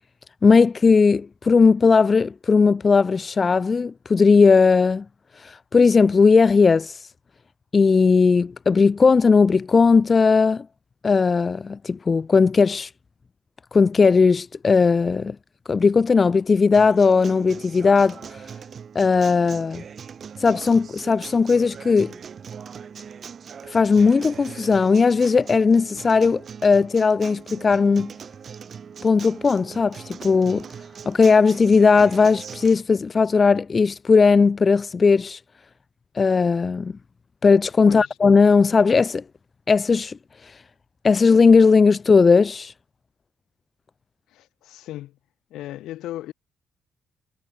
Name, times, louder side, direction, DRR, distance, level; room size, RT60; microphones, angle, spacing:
voice 1, 0.4-5.0 5.4-7.1 7.7-10.7 11.0-12.9 13.7-15.4 15.7-18.4 18.9-19.8 20.4-22.1 23.7-28.1 29.0-30.6 31.1-35.4 36.1-36.9 37.4-39.2 39.7-40.2 40.4-40.5 41.0-42.7, left 4 dB, 35° left, 0.5 m, -17 dB
Acoustic guitar, 16.7-32.7, right 7 dB, 50° right, 8.0 m, -40 dB
voice 2, 44.3-45.2 45.5-46.3, left 14 dB, 85° left, 5.6 m, -36 dB
cardioid pair, 90°, 0 cm